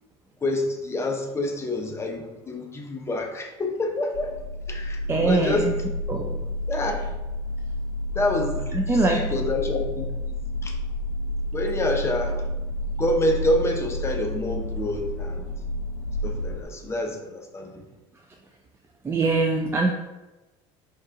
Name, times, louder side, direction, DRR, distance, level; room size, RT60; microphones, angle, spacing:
voice 1, 0.4-4.4 4.7-5.7 6.7-7.1 8.1-10.3 10.6-10.8 11.5-12.4 13.0-15.5 16.2-17.8, left 1 dB, 20° left, 2 dB, 0.7 m, -27 dB
sound 1, 4.1-16.6, left 1 dB, 75° left, 0.5 m, -30 dB
voice 2, 5.1-6.4 8.7-9.2 19.0-19.9, right 3 dB, 15° right, 1 dB, 0.4 m, -23 dB
4.5 x 2.5 x 3.7 m, 1.1 s
supercardioid pair, 110°, 14 cm